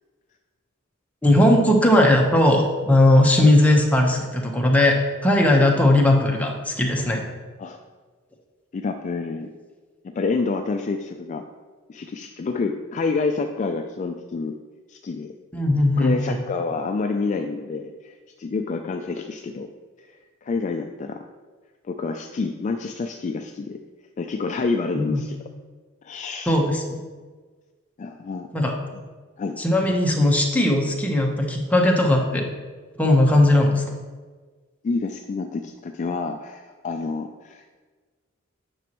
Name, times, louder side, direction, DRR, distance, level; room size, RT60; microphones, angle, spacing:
voice 1, 1.2-5.0 5.2-7.2 15.5-16.4 25.0-25.2 26.5-27.0 28.5-28.7 29.6-32.5 33.0-33.8, left 1 dB, 5° left, 0 dB, 0.9 m, -18 dB
voice 2, 8.7-9.5 10.0-11.4 11.9-14.5 14.9-15.3 16.0-19.7 20.0-21.2 21.9-23.8 24.2-25.4 26.0-26.6 28.0-28.5 29.4-29.6 34.8-37.8, left 4 dB, 35° left, 6 dB, 0.3 m, -28 dB
9.0 x 6.1 x 3.0 m, 1.4 s
head